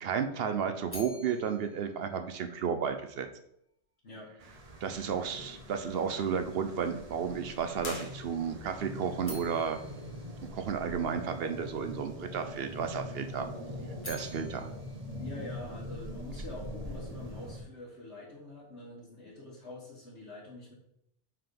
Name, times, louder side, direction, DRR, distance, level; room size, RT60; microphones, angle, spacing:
voice 1, 0.0-3.3 4.8-9.8 10.5-13.5 14.1-14.7, right 7 dB, 65° right, 7 dB, 0.8 m, -33 dB
sound 1, 0.9-3.0 9.2-11.4 13.7-16.2, left 2 dB, 10° left, 1.8 m, -50 dB
sound 2, 4.4-17.6, equal, 35° right, 0.9 m, -43 dB
sound 3, 7.8-8.8, left 4 dB, 50° left, 1.0 m, -44 dB
voice 2, 15.2-20.7, left 2 dB, 75° left, -7 dB, 1.6 m, -45 dB
5.7 x 3.7 x 5.2 m, 0.74 s
omnidirectional pair, 1.2 m